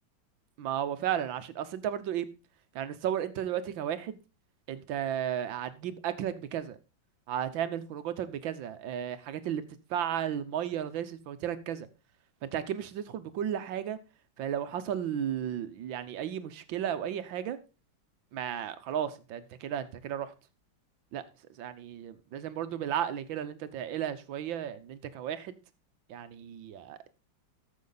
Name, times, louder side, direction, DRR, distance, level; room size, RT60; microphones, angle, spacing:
voice 1, 0.6-2.3 2.8-4.2 4.7-6.8 7.3-11.9 12.4-14.0 14.4-17.6 18.3-20.3 21.1-21.2 21.6-25.6 26.1-27.2, right 10 dB, 80° right, 12 dB, 1.6 m, -34 dB
14.0 x 6.4 x 3.9 m, 0.31 s
omnidirectional pair, 2.1 m